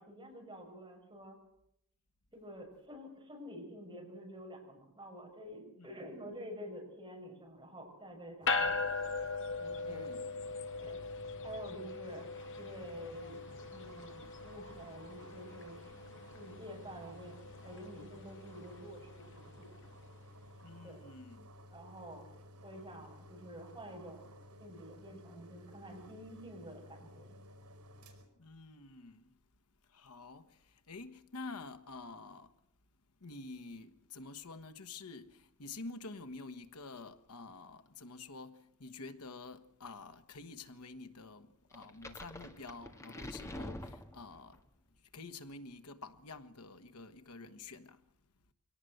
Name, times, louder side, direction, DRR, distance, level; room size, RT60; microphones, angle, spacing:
voice 1, 0.0-1.4 2.3-9.0 9.6-10.2 10.8-11.0 11.4-12.3 12.6-13.4 13.7-16.0 16.2-17.3 17.6-19.7 20.8-21.0 21.7-22.2 22.6-24.3 24.6-27.4, equal, 20° right, 6.3 m, -49 dB
sound 1, 8.4-28.2, equal, 80° right, 5.3 m, -55 dB
sound 2, 8.5-20.0, left 4 dB, 60° left, 1.7 m, -40 dB
voice 2, 9.8-10.3 20.6-21.5 28.4-29.3 29.9-32.5 33.2-44.6 45.1-48.0, left 3 dB, 90° left, 1.4 m, -49 dB
sound 3, 41.7-44.6, left 1 dB, 15° left, 1.7 m, -46 dB
23.0 x 18.0 x 7.9 m
head